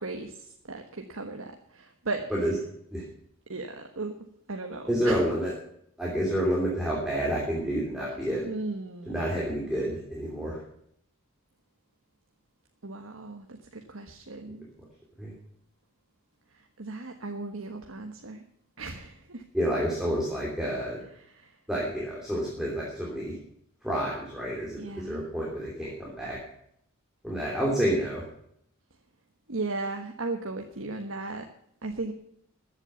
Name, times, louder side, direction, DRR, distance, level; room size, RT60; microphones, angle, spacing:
voice 1, 0.0-2.2 3.5-4.1 4.5-5.2 8.1-8.2 8.4-9.3 12.8-13.5 13.7-14.6 16.8-18.4 18.8-19.4 21.1-21.5 24.8-25.3 29.5-31.4 31.8-32.1, right 3 dB, 70° right, 4 dB, 1.3 m, -36 dB
voice 2, 4.9-5.5 6.0-8.5 9.1-10.6 15.2-15.3 19.5-21.0 21.7-23.4 23.8-26.4 27.2-28.2, equal, ahead, -5 dB, 3.1 m, -29 dB
14.5 x 8.2 x 6.9 m, 0.70 s
head